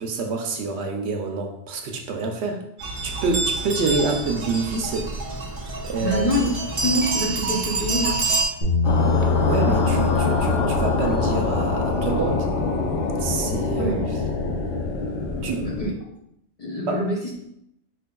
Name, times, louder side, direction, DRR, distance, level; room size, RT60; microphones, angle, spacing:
voice 1, 0.0-2.6 3.0-5.1 5.8-6.2 9.4-12.5 13.2-14.0 15.4-15.7 16.9-17.1, right 4 dB, 75° right, 3 dB, 0.9 m, -27 dB
sound 1, 2.8-8.5, right 3 dB, 50° right, 0.8 m, -27 dB
voice 2, 6.0-6.5 6.8-8.2 13.8-14.1 15.6-15.9 16.6-17.5, left 1 dB, 40° left, -3 dB, 0.6 m, -25 dB
Bass guitar, 8.6-14.9, left 5 dB, 75° left, 1.4 m, -26 dB
sound 2, 8.8-15.9, left 3 dB, 90° left, 0.9 m, -25 dB
4.5 x 3.4 x 2.2 m, 0.76 s
omnidirectional pair, 1.2 m